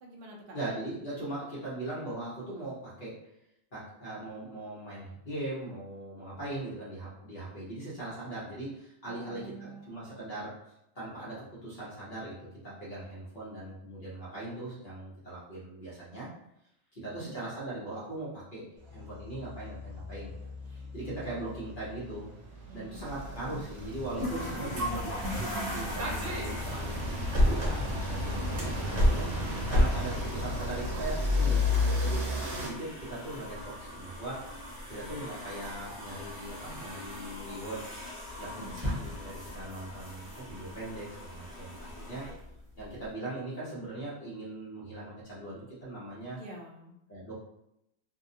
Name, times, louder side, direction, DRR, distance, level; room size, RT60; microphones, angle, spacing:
voice 1, 0.0-0.6 9.1-10.2 17.0-17.4 22.7-23.7 28.1-28.8 38.5-38.8 46.3-46.9, right 2 dB, 60° right, 1 dB, 0.7 m, -48 dB
voice 2, 0.5-3.2 3.7-10.6 10.9-16.3 16.9-20.3 20.7-22.3 22.7-27.0 27.3-28.2 28.6-32.2 32.5-37.9 38.4-42.3 42.8-46.4 47.1-47.3, right 2 dB, 50° left, -8 dB, 1.0 m, -40 dB
sound 1, 18.8-25.3, left 3 dB, 30° left, 1.0 m, -47 dB
sound 2, 20.9-21.2 21.8-32.7, left 1 dB, 75° right, 1.1 m, -30 dB
sound 3, 24.2-43.1, left 1 dB, 25° right, 1.0 m, -40 dB
2.7 x 2.2 x 2.6 m, 0.81 s
omnidirectional pair, 1.2 m